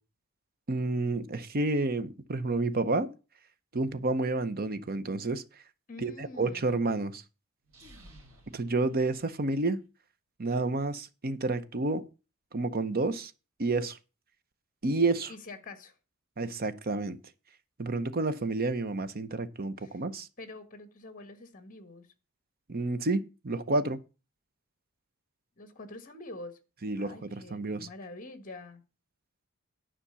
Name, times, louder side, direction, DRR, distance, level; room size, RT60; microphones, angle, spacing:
voice 1, 0.7-3.1 3.7-5.4 6.0-7.2 8.5-9.8 10.4-12.0 12.5-13.3 13.6-14.0 14.8-15.3 16.4-17.2 17.8-20.3 22.7-24.0 26.8-27.9, right 2 dB, 45° right, 0.8 m, -30 dB
voice 2, 5.9-6.7 15.3-16.0 19.8-20.0 20.4-22.1 25.6-26.6 27.0-28.8, left 2 dB, 40° left, 1.4 m, -46 dB
sound 1, 7.6-9.8, right 1 dB, 75° right, 3.6 m, -55 dB
10.0 x 5.1 x 6.9 m
head